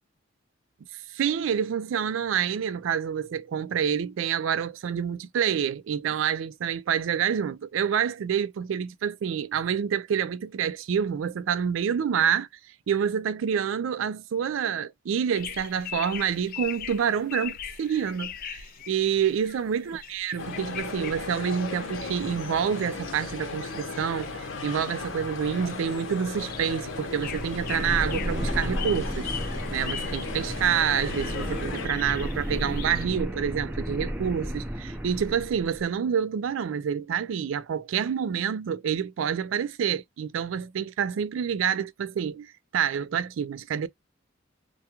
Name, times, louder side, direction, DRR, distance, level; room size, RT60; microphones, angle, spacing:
voice 1, 1.1-12.5 12.9-29.3 29.7-43.9, right 8 dB, 90° right, 0.3 m, -28 dB
sound 1, 15.3-33.1, left 9 dB, 50° left, 0.3 m, -41 dB
sound 2, 20.4-31.9, left 3 dB, 85° left, 0.8 m, -36 dB
sound 3, 26.4-35.9, equal, 10° right, 0.5 m, -33 dB
2.3 x 2.3 x 2.8 m
head